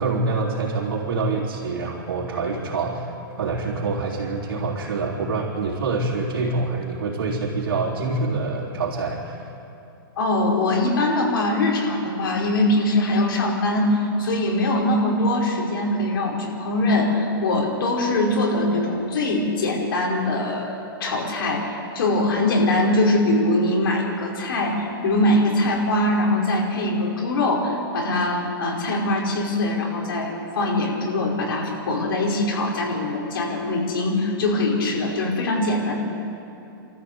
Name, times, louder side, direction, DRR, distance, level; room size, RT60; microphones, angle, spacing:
voice 1, 0.0-9.5, right 3 dB, 85° right, -5 dB, 3.6 m, -26 dB
voice 2, 10.2-36.0, left 1 dB, 75° left, -2 dB, 5.2 m, -22 dB
28.5 x 14.0 x 8.1 m, 2.8 s
hypercardioid pair, 165°, 12 cm